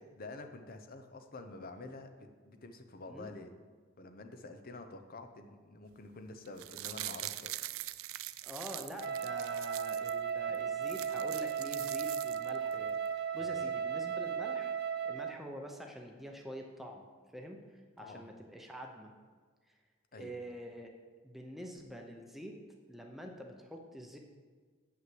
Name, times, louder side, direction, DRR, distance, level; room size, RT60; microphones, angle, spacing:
voice 1, 0.2-3.5 4.0-7.6 10.5-10.6 13.4-13.6 18.0-18.2 20.1-20.3, left 2 dB, 45° left, 7 dB, 0.8 m, -48 dB
sound 1, 6.4-10.1 10.5-10.6 10.8-12.7 13.1-13.2, right 16 dB, 90° right, 0.4 m, -43 dB
voice 2, 8.4-13.0 13.3-14.7 15.0-17.0 17.3-17.6 18.0-19.1 20.2-20.9 21.2-22.6 22.9-24.2, equal, ahead, 2 dB, 0.8 m, -46 dB
Wind instrument woodwind instrument, 9.0-15.4, right 7 dB, 55° right, 0.8 m, -35 dB
7.8 x 5.9 x 7.7 m, 1.5 s
head